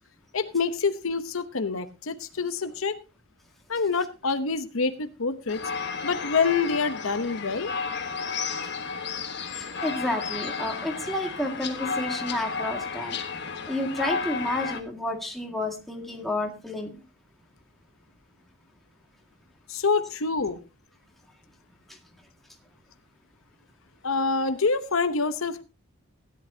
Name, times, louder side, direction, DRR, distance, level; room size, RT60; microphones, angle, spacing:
voice 1, 0.3-2.9 3.7-5.6 6.0-7.7 19.7-20.6 24.0-25.6, left 4 dB, 70° left, 10 dB, 0.9 m, -26 dB
sound 1, 5.5-14.8, left 5 dB, 50° left, 1.4 m, -32 dB
voice 2, 9.5-13.2 13.7-16.9 21.9-22.0, left 1 dB, ahead, 1 dB, 1.9 m, -30 dB
16.5 x 11.0 x 2.8 m, 0.29 s
head